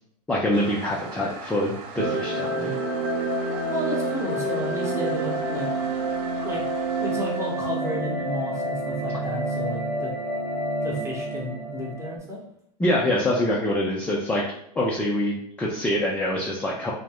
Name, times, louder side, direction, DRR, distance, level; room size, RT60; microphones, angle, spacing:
voice 1, 0.3-2.8 12.8-14.4 14.8-16.9, left 1 dB, 5° left, -3 dB, 0.3 m, -25 dB
Toilet flush, 0.5-8.0, right 4 dB, 45° right, 0.5 m, -41 dB
sound 1, 2.0-12.2, right 2 dB, 75° right, 0.8 m, -28 dB
voice 2, 3.7-5.9 6.4-6.6 7.0-10.1 10.8-12.4, left 1 dB, 15° right, -3 dB, 0.8 m, -32 dB
2.4 x 2.1 x 3.4 m, 0.74 s
hypercardioid pair, 115°, 20 cm